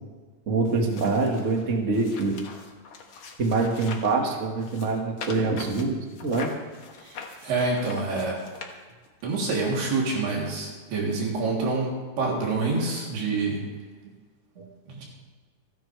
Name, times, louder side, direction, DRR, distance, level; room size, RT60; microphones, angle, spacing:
voice 1, 0.5-2.4 3.4-6.5 14.6-14.7, right 3 dB, 35° right, 1 dB, 1.2 m, -25 dB
sound 1, 0.6-4.2 4.6-9.2 9.9-10.0, left 5 dB, 70° left, 1.2 m, -43 dB
voice 2, 7.0-8.4 9.2-13.6 14.9-15.0, right 3 dB, 85° right, -3 dB, 5.4 m, -27 dB
28.5 x 10.0 x 3.4 m, 1.4 s
omnidirectional pair, 4.5 m